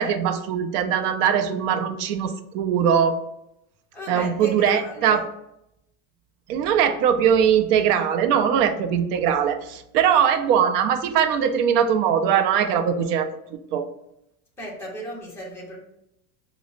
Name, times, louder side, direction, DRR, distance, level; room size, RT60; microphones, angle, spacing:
voice 1, 0.0-3.2 4.1-5.2 6.5-13.3 13.7-13.9, right 8 dB, 75° right, 8 dB, 0.6 m, -21 dB
voice 2, 3.9-5.2 14.6-15.8, right 1 dB, 5° left, -4 dB, 0.5 m, -35 dB
5.0 x 2.0 x 2.4 m, 0.82 s
cardioid pair, 160°, 48 cm